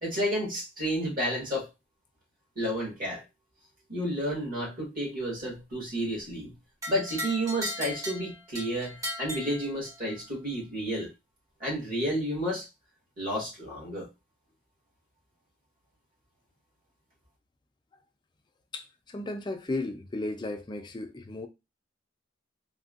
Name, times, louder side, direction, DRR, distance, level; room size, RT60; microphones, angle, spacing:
voice 1, 0.0-1.7 2.5-3.2 3.9-6.5 6.9-11.1 11.6-12.7 13.2-14.1, equal, 45° right, 1.5 m, -31 dB
sound 1, 6.8-10.2, equal, 15° right, 0.7 m, -37 dB
voice 2, 18.7-21.5, left 2 dB, 25° left, 0.4 m, -35 dB
3.4 x 2.2 x 2.4 m
head